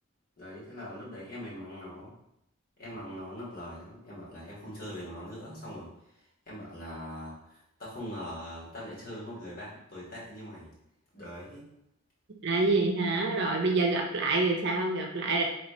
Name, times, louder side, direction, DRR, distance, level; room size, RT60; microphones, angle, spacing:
voice 1, 0.4-2.1 2.8-10.7 11.1-11.7, equal, 40° left, -7 dB, 1.6 m, -42 dB
voice 2, 12.4-15.4, right 3 dB, 55° right, 1 dB, 0.6 m, -26 dB
3.2 x 2.9 x 4.2 m, 0.80 s
head